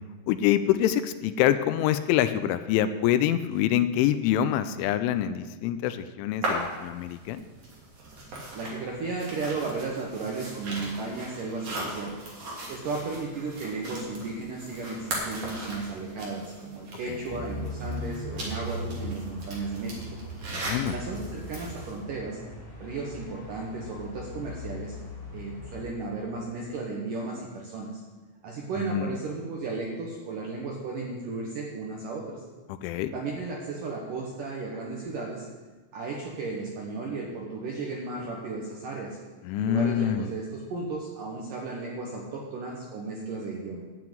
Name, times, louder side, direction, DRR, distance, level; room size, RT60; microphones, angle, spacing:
voice 1, 0.3-7.4 17.1-17.4 20.5-21.0 28.9-29.1 32.8-33.2 39.4-40.3, left 11 dB, 85° left, 12 dB, 2.9 m, -25 dB
sound 1, 6.4-22.0, right 1 dB, 40° right, 2.9 m, -39 dB
voice 2, 8.5-12.4 12.7-20.1 20.8-22.4 22.8-25.0 25.3-28.0 28.4-32.4 33.1-35.5 35.9-39.2 39.6-43.8, right 3 dB, 75° right, -1 dB, 1.9 m, -34 dB
sound 2, 17.3-25.9, left 1 dB, 15° left, 2.9 m, -39 dB
12.0 x 6.0 x 9.3 m, 1.3 s
omnidirectional pair, 5.6 m